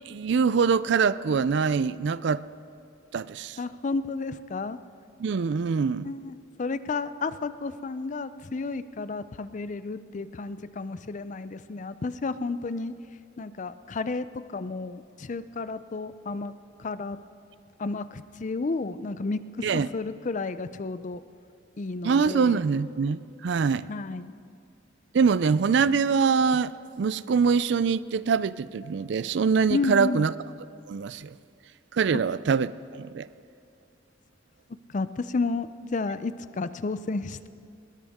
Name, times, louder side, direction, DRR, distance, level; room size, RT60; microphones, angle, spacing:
voice 1, 0.1-2.4 3.1-3.6 5.2-6.1 19.6-19.9 22.0-23.9 25.1-30.3 30.9-31.4 31.9-33.3, right 5 dB, 65° right, 0.4 m, -24 dB
voice 2, 3.6-4.8 6.0-12.9 13.4-17.2 17.8-21.2 21.8-22.6 23.9-24.3 29.7-30.2 32.1-32.2 34.7-37.5, left 3 dB, 40° left, 0.5 m, -32 dB
20.5 x 18.5 x 3.6 m
head